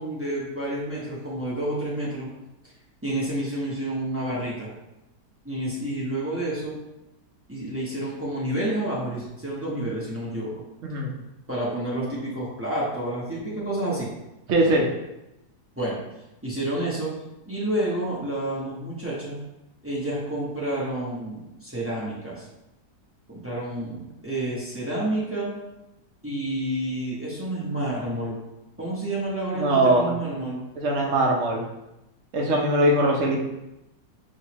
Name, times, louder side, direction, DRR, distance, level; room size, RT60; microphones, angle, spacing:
voice 1, 0.0-2.3 3.0-4.7 5.4-6.8 7.5-10.6 11.5-14.1 15.8-16.0 16.4-17.1 17.5-19.4 19.8-22.5 23.3-25.5 26.2-28.4 28.8-30.6, right 1 dB, 15° right, -7 dB, 0.5 m, -29 dB
voice 2, 14.5-14.9 29.5-30.1 30.8-31.6 32.3-33.4, right 1 dB, 55° right, 0 dB, 0.9 m, -21 dB
4.4 x 3.1 x 3.0 m, 0.93 s
omnidirectional pair, 1.8 m